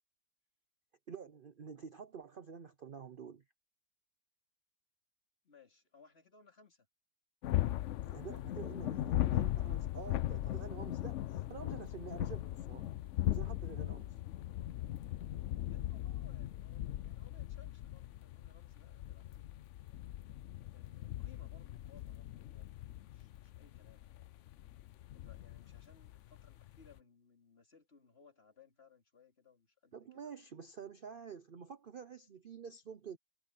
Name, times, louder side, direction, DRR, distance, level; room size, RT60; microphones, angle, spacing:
voice 1, 1.1-3.4 8.0-12.9 13.3-14.1 29.9-33.2, right 6 dB, 45° right, 0.8 m, -49 dB
voice 2, 5.4-6.9 15.2-19.8 20.7-24.4 25.1-30.3, left 5 dB, 40° left, 3.3 m, -64 dB
sound 1, 7.4-27.0, left 13 dB, 65° left, 0.8 m, -39 dB
omnidirectional pair, 1.6 m